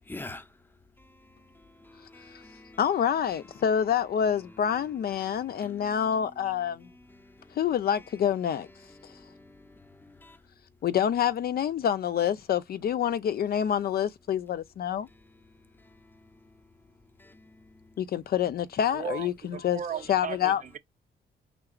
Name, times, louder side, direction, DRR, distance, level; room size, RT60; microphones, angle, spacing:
voice 1, 0.1-0.5 1.0-2.8 3.3-3.6 4.2-8.2 8.5-10.4 15.1-15.2 15.8-16.3 17.2-17.9, left 2 dB, 10° left, 0.7 m, -49 dB
voice 2, 2.8-6.8 7.6-8.7 10.8-15.1 18.0-19.3 19.6-19.8 20.1-20.6, left 9 dB, 50° left, 0.4 m, -27 dB
voice 3, 18.9-20.8, right 7 dB, 40° right, 0.6 m, -36 dB
4.8 x 3.7 x 2.4 m
cardioid pair, 90°, 20 cm